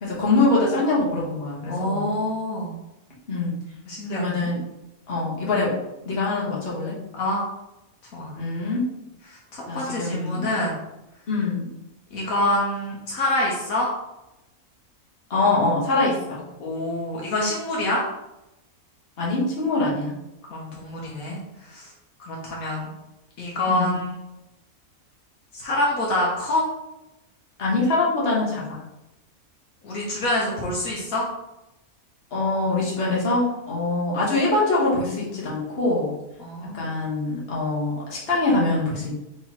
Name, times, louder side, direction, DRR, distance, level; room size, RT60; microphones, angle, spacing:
voice 1, 0.0-2.1 3.3-3.6 4.1-4.6 5.1-5.7 6.0-6.9 8.3-8.8 9.7-10.5 11.3-11.7 15.3-16.4 19.2-20.1 23.7-24.0 27.6-28.8 32.3-36.1 36.7-39.1, left 2 dB, 45° left, -6 dB, 1.4 m, -24 dB
voice 2, 1.7-2.8 3.9-4.5 7.2-7.4 8.1-8.4 9.3-10.8 12.1-13.9 16.6-18.0 20.5-21.9 22.2-22.9 23.4-24.2 25.5-26.6 29.8-31.3 36.4-36.9, left 1 dB, 75° left, -3 dB, 1.3 m, -26 dB
3.7 x 2.9 x 4.1 m, 0.94 s
omnidirectional pair, 1.5 m